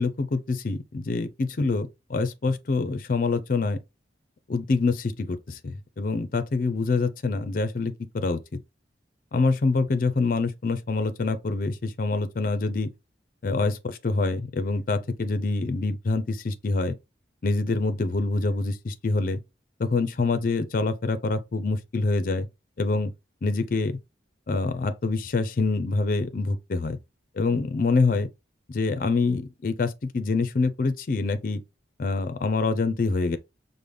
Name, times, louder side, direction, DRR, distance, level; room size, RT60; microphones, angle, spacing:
voice 1, 0.0-3.8 4.5-8.4 9.3-12.9 13.4-16.9 17.4-19.4 19.8-22.5 22.8-23.1 23.4-24.0 24.5-27.0 27.4-28.3 28.7-31.6 32.0-33.4, left 3 dB, 50° left, 0.4 m, -26 dB
5.3 x 2.1 x 3.2 m
head